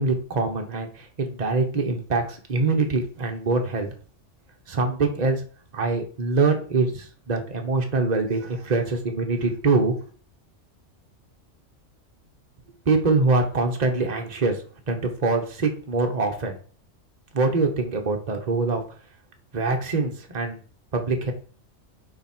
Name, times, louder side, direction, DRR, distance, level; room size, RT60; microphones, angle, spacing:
voice 1, 0.0-3.9 4.7-5.4 5.7-9.9 12.9-16.6 17.3-18.8 19.5-20.6 20.9-21.3, right 3 dB, 35° right, 3 dB, 1.2 m, -24 dB
6.7 x 4.6 x 4.5 m, 0.41 s
omnidirectional pair, 1.3 m